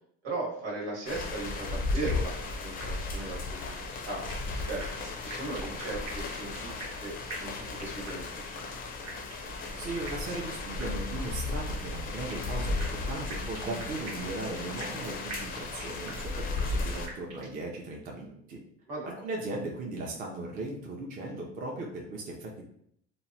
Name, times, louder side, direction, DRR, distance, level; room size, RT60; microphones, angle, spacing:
voice 1, 0.2-4.3 4.7-4.8 5.2-8.7 18.9-19.2, right 2 dB, 80° right, -4 dB, 1.2 m, -38 dB
sound 1, 1.1-17.1, left 3 dB, 30° left, 0.4 m, -35 dB
sound 2, 2.1-2.5 2.8-2.9 3.2-3.3 3.7-4.5 4.8-7.0 7.3-8.3 8.6-8.7 9.1-9.6 10.1-10.5 10.8-10.9 11.2-11.3 11.7-12.5 12.8-15.0 15.3-16.3 16.6-16.7 17.1-17.6, right 3 dB, 65° right, 0.9 m, -44 dB
voice 2, 9.8-18.6 19.0-22.7, right 2 dB, 30° right, -1 dB, 0.5 m, -37 dB
2.9 x 2.1 x 2.6 m, 0.68 s
cardioid pair, 130°, 29 cm